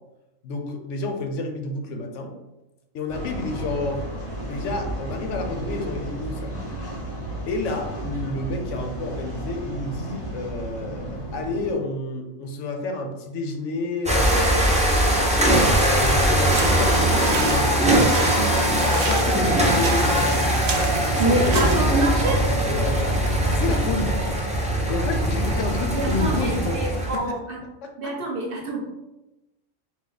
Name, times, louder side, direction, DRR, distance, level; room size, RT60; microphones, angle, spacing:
voice 1, 0.4-2.3 2.9-4.1 4.4-6.6 7.5-14.7 15.7-17.7 18.8-22.0 22.7-24.2 24.5-27.3 27.8-28.1, left 3 dB, 75° left, 4 dB, 0.9 m, -30 dB
sound 1, 3.1-11.7, right 2 dB, 25° left, 0.7 m, -33 dB
sound 2, 14.1-27.2, right 1 dB, 10° right, 0.4 m, -21 dB
sound 3, 16.3-21.8, right 4 dB, 80° right, 0.3 m, -32 dB
voice 2, 19.3-19.9 21.2-22.4 25.9-27.6 28.0-28.9, right 2 dB, 50° right, 0 dB, 0.8 m, -26 dB
4.3 x 2.3 x 3.9 m, 0.98 s
omnidirectional pair, 1.3 m